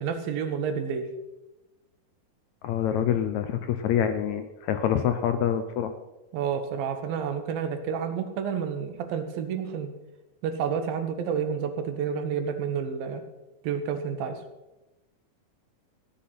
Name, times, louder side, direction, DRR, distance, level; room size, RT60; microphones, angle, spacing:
voice 1, 0.0-1.1 6.3-9.9 10.4-13.2 13.6-14.4, right 7 dB, 90° right, 7 dB, 3.1 m, -30 dB
voice 2, 2.6-5.9, left 9 dB, 75° left, 9 dB, 1.7 m, -26 dB
15.5 x 10.5 x 6.0 m, 1.0 s
omnidirectional pair, 4.0 m